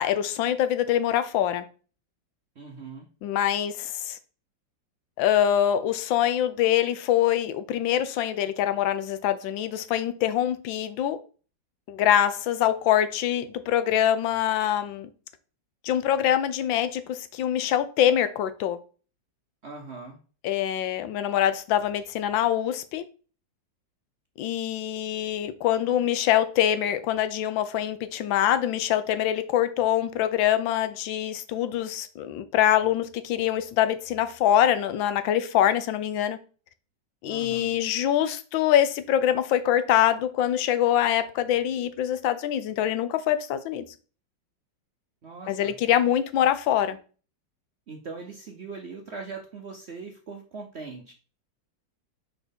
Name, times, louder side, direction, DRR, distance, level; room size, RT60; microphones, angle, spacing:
voice 1, 0.0-1.7 3.2-4.2 5.2-11.2 11.9-15.1 15.8-18.8 20.4-23.0 24.4-36.4 37.2-43.8 45.5-47.0, left 11 dB, 85° left, 1.4 m, -24 dB
voice 2, 2.6-3.1 19.6-20.2 37.3-37.8 45.2-45.7 47.9-51.1, right 4 dB, 60° right, 0.7 m, -40 dB
4.4 x 4.3 x 5.1 m
omnidirectional pair, 2.0 m